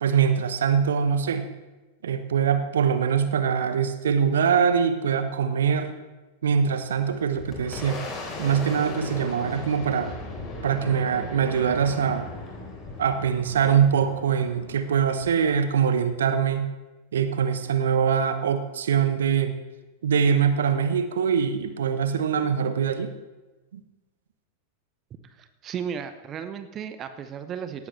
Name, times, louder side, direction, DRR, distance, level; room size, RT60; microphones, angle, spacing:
voice 1, 0.0-1.5 2.0-5.9 6.4-8.0 8.4-10.1 10.6-12.3 13.0-16.7 17.1-19.5 20.0-23.1 23.7-23.8, right 7 dB, 65° right, 10 dB, 0.9 m, -23 dB
Boom, 6.8-16.3, left 2 dB, 25° left, 3.9 m, -38 dB
voice 2, 25.2-27.9, right 7 dB, 30° right, 10 dB, 0.9 m, -35 dB
17.5 x 13.5 x 3.2 m, 1.2 s
figure-of-eight pair, 90°, 0 cm